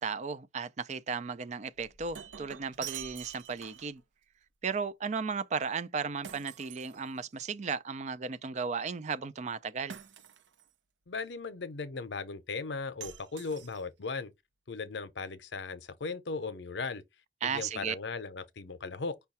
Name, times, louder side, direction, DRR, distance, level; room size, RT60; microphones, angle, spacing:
voice 1, 0.0-4.0 4.6-9.9 17.4-18.0, right 5 dB, 40° right, 0.4 m, -35 dB
Shatter, 1.8-4.0 6.2-7.5 9.9-10.7 13.0-14.1, right 9 dB, 85° right, 0.6 m, -46 dB
voice 2, 11.1-14.3 14.7-17.0 17.4-19.2, left 4 dB, 75° left, 0.7 m, -37 dB
5.5 x 2.3 x 4.1 m
head